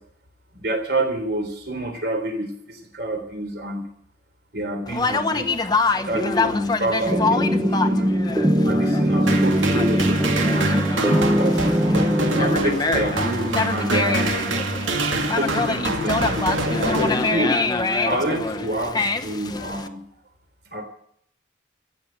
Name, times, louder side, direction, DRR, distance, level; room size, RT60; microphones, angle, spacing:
voice 1, 0.5-3.8 4.5-8.2 8.6-11.7 12.2-14.3 15.1-17.6 18.0-20.0 20.7-20.8, right 1 dB, 55° right, 4 dB, 3.5 m, -28 dB
Conversation, 4.9-19.9, left 3 dB, 20° left, 0.8 m, -26 dB
sound 1, 7.1-12.6, equal, 15° right, 0.8 m, -21 dB
sound 2, 9.3-17.8, right 2 dB, 85° right, 2.3 m, -25 dB
15.0 x 8.5 x 9.5 m, 0.66 s
head